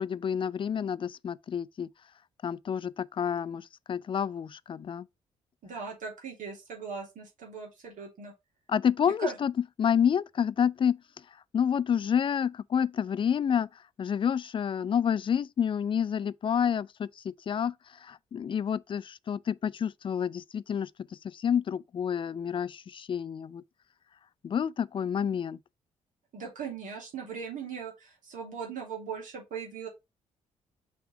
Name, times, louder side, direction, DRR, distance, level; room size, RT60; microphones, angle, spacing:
voice 1, 0.0-1.9 2.4-5.1 8.7-9.5 9.8-11.0 11.5-13.7 14.0-17.7 18.0-20.9 21.3-23.6 24.4-25.6, left 8 dB, 30° left, 0.4 m, -29 dB
voice 2, 5.6-8.3 9.1-9.4 26.3-29.9, right 6 dB, 55° right, 2.7 m, -39 dB
5.9 x 3.5 x 4.7 m
figure-of-eight pair, 40°, 16 cm